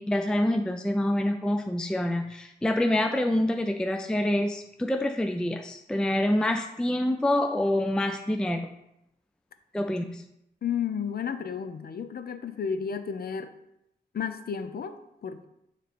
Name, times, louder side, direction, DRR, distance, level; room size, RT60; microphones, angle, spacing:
voice 1, 0.0-8.7 9.7-10.2, left 1 dB, 5° left, 5 dB, 0.3 m, -26 dB
voice 2, 10.6-13.5 14.1-15.4, left 7 dB, 60° left, 9 dB, 0.6 m, -32 dB
9.1 x 3.2 x 4.2 m, 0.82 s
wide cardioid pair, 135°, 18 cm